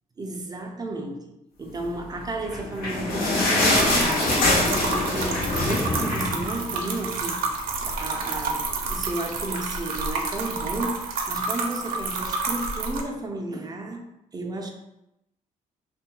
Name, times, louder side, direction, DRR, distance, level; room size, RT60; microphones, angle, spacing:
voice 1, 0.2-1.3 1.6-7.5 7.8-14.1 14.3-14.7, right 2 dB, 25° right, 0.4 m, -33 dB
sound 1, 2.4-7.1 7.5-7.6 7.9-8.0 8.7-8.8, left 2 dB, 85° left, 0.8 m, -24 dB
sound 2, 3.7-13.0, right 4 dB, 80° right, 0.5 m, -30 dB
2.6 x 2.2 x 2.9 m
cardioid pair, 85°, 15 cm